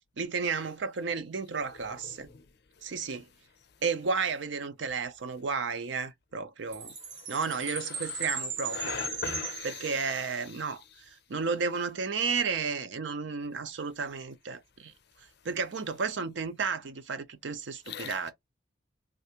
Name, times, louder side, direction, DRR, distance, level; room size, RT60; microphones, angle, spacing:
voice 1, 0.2-2.3 2.8-3.3 3.8-7.0 7.3-9.0 9.6-14.9 15.4-18.3, right 5 dB, 70° right, 0.5 m, -33 dB
Chime, 6.7-10.4, right 4 dB, 45° right, 1.1 m, -37 dB
voice 2, 8.7-9.7 17.9-18.3, left 6 dB, 60° left, 0.6 m, -37 dB
3.2 x 2.5 x 2.8 m
head